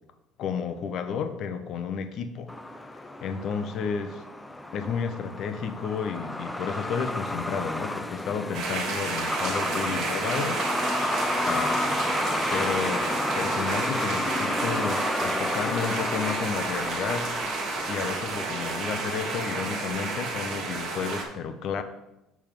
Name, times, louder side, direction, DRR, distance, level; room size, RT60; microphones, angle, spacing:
voice 1, 0.4-2.5 3.2-4.2 4.7-10.6 11.4-12.0 12.5-13.1 13.3-17.5 17.9-21.8, left 6 dB, 45° left, 9 dB, 0.6 m, -32 dB
Truck, 2.5-19.9, left 1 dB, 5° left, 0.3 m, -31 dB
sound 1, 8.5-21.2, right 4 dB, 50° right, 1.2 m, -31 dB
6.8 x 3.5 x 5.9 m, 0.92 s
cardioid pair, 165°, 0 cm